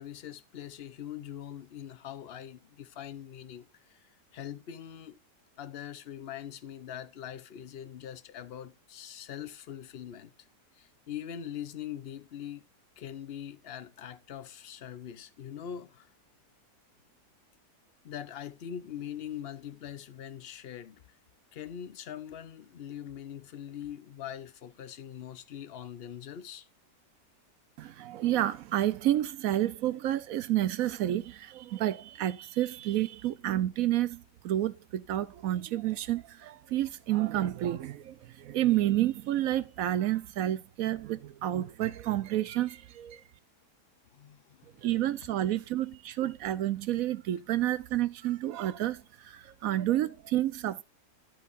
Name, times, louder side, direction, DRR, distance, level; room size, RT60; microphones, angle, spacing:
voice 1, 0.0-5.2 5.6-10.3 10.7-12.6 13.0-16.1 18.0-21.0 21.5-26.7 44.1-44.9, left 10 dB, 50° left, 0.7 m, -42 dB
voice 2, 27.8-43.2 44.8-49.0 49.3-50.8, right 13 dB, 65° right, 0.9 m, -30 dB
10.5 x 9.2 x 2.5 m
omnidirectional pair, 1.8 m